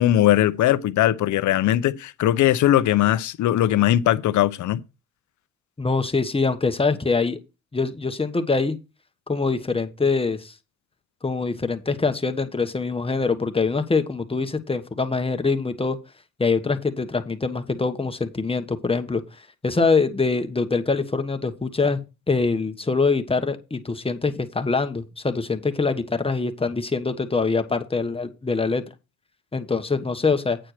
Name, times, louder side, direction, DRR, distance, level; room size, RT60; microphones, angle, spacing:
voice 1, 0.0-4.8, left 13 dB, 75° left, 0.8 m, -20 dB
voice 2, 5.8-7.4 7.7-8.8 9.3-10.5 11.2-16.0 16.4-19.2 19.6-28.8 29.5-30.6, left 4 dB, 20° left, 1.2 m, -24 dB
9.1 x 4.3 x 6.5 m
cardioid pair, 90°, 30 cm